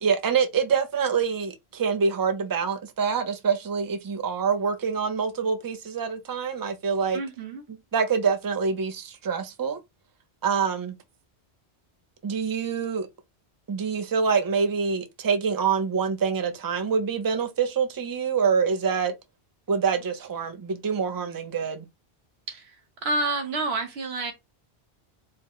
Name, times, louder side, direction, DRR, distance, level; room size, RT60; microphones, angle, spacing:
voice 1, 0.0-7.2 7.9-9.8 10.4-10.9 12.2-13.1 13.7-19.1 19.7-21.9, right 6 dB, 30° right, 0.4 m, -26 dB
voice 2, 7.1-7.6 22.5-22.8 23.0-24.3, right 2 dB, 70° right, 1.2 m, -29 dB
4.3 x 2.0 x 3.6 m
omnidirectional pair, 1.1 m